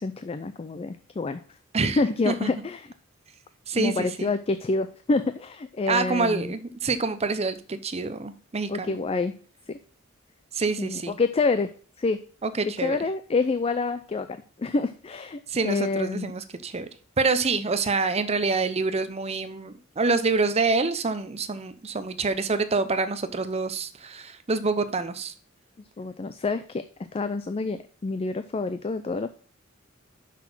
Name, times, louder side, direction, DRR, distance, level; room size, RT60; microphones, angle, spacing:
voice 1, 0.0-1.4 2.0-2.8 3.8-6.6 8.7-9.4 9.7-9.8 10.8-11.7 12.0-12.2 12.8-16.3 26.0-29.3, left 3 dB, 30° left, 11 dB, 0.4 m, -27 dB
voice 2, 3.7-4.3 5.9-9.0 10.5-11.2 12.4-13.0 15.5-16.9 17.2-25.3, right 3 dB, 30° right, 11 dB, 0.6 m, -26 dB
6.0 x 5.8 x 6.0 m, 0.41 s
head